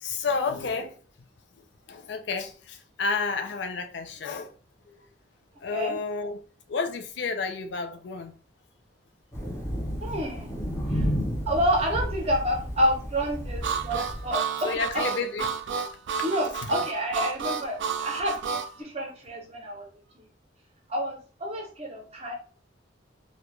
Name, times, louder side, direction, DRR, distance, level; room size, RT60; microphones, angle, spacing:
voice 1, 0.0-1.0 1.6-4.5 4.9-5.0 5.6-6.4 6.7-8.3 14.6-15.5 16.6-16.7, left 4 dB, 65° left, 0.4 m, -31 dB
Thunder, 9.3-14.3, equal, 15° left, 0.6 m, -32 dB
voice 2, 10.0-10.6 10.9-11.1 11.5-15.0 16.2-19.9 20.2-20.3 20.9-22.3, equal, 35° right, 0.6 m, -29 dB
Harmonica, 13.6-18.7, right 6 dB, 70° right, 0.3 m, -30 dB
2.2 x 2.1 x 3.0 m
head